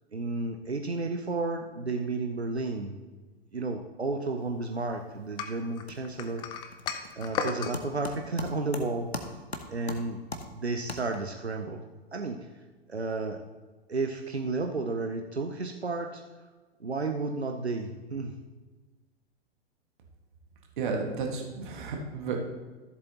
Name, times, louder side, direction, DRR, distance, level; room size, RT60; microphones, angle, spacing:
voice 1, 0.1-3.0 3.5-6.4 7.1-9.4 9.7-10.2 10.5-11.8 12.1-12.4 12.9-13.4 13.9-16.2 16.8-18.3, right 3 dB, 90° right, 4 dB, 0.7 m, -32 dB
sound 1, 5.0-5.4 5.6-11.5, left 2 dB, 90° left, 1.0 m, -41 dB
sound 2, 5.4-7.8, left 6 dB, 15° left, 0.4 m, -34 dB
voice 2, 20.8-22.4, right 4 dB, 50° right, 2 dB, 1.7 m, -32 dB
13.5 x 7.6 x 2.9 m, 1.3 s
figure-of-eight pair, 105°, 31 cm